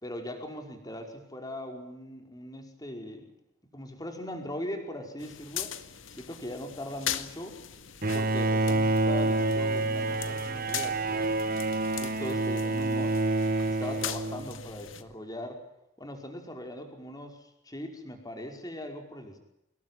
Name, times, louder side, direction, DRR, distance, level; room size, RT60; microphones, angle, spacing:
voice 1, 0.0-3.2 3.7-5.7 6.1-7.6 8.1-11.2 12.0-13.2 13.7-15.6 16.0-19.4, left 1 dB, 20° left, 4 dB, 5.3 m, -40 dB
sound 1, 5.2-15.0, left 10 dB, 70° left, 2.0 m, -40 dB
Bowed string instrument, 8.0-14.8, right 2 dB, 45° right, 1.2 m, -28 dB
26.5 x 21.5 x 9.2 m, 0.84 s
head